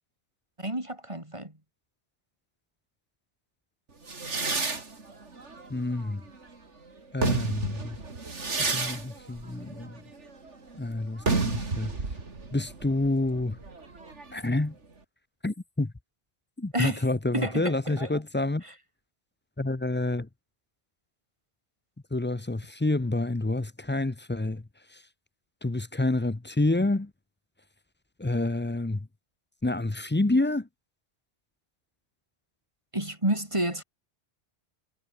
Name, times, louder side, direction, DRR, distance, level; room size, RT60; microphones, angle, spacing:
voice 1, 0.6-1.5 16.7-17.1 17.3-18.2 18.6-18.7 32.9-33.8, right 1 dB, 25° right, 4.3 m, -30 dB
sound 1, 4.1-6.5 7.0-14.5, right 3 dB, 90° right, 3.2 m, -32 dB
voice 2, 5.7-6.2 7.1-8.0 8.6-10.0 10.8-11.9 12.5-13.6 14.3-14.7 15.4-15.9 16.6-18.6 19.6-20.3 22.1-24.6 25.6-27.1 28.2-29.1 29.6-30.7, left 2 dB, 15° left, 0.5 m, -28 dB
omnidirectional pair, 1.2 m